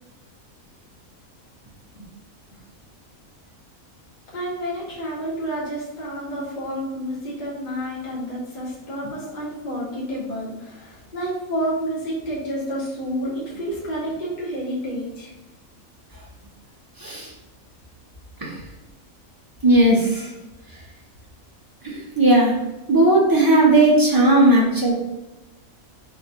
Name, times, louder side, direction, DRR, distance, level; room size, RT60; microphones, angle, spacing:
voice 1, 4.3-15.3, equal, 35° left, -6 dB, 1.2 m, -29 dB
voice 2, 19.6-20.3 21.8-22.5 22.9-25.0, right 1 dB, 25° right, -4 dB, 0.5 m, -16 dB
3.4 x 2.6 x 4.2 m, 1.0 s
omnidirectional pair, 1.5 m